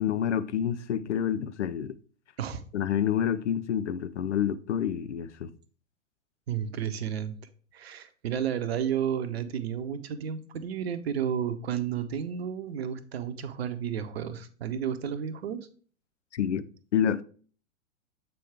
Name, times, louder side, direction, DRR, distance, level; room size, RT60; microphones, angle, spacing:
voice 1, 0.0-2.0 2.7-5.5 16.3-16.6 16.9-17.2, left 9 dB, 60° left, 0.6 m, -28 dB
voice 2, 6.5-7.4 7.7-15.7, right 8 dB, 50° right, 0.8 m, -32 dB
7.7 x 4.7 x 3.5 m
figure-of-eight pair, 105°, 39 cm